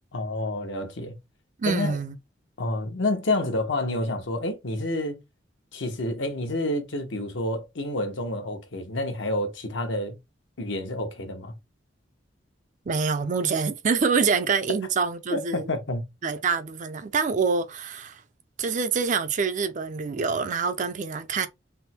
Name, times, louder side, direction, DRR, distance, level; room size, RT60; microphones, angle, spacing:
voice 1, 0.1-1.1 1.6-2.0 2.6-5.2 5.7-10.2 10.6-11.5 15.3-16.0, left 1 dB, 75° left, 1.0 m, -29 dB
voice 2, 1.6-2.2 12.9-15.7 16.2-18.2 18.6-21.5, right 5 dB, 40° right, 0.4 m, -26 dB
3.5 x 2.1 x 4.3 m
head